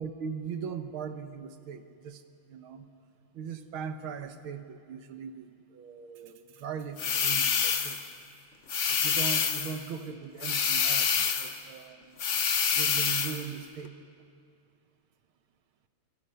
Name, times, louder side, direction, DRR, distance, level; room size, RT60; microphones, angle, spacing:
voice 1, 0.0-2.2 2.5-2.9 3.3-8.0 8.9-12.2 12.8-13.9, right 7 dB, 80° right, 9 dB, 1.9 m, -39 dB
sound 1, 7.0-8.1 8.7-9.8 10.4-11.6 12.2-13.4, left 6 dB, 45° left, 1.1 m, -27 dB
28.5 x 23.5 x 5.6 m, 2.5 s
omnidirectional pair, 2.2 m